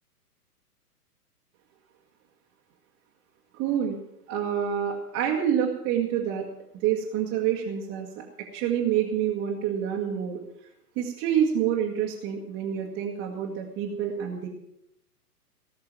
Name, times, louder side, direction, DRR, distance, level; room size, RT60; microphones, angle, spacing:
voice 1, 3.5-4.0 4.3-6.5 6.8-8.2 8.5-10.4 10.9-14.5, right 9 dB, 25° right, -3 dB, 1.8 m, -27 dB
18.5 x 6.6 x 9.0 m, 0.77 s
figure-of-eight pair, 115°, 47 cm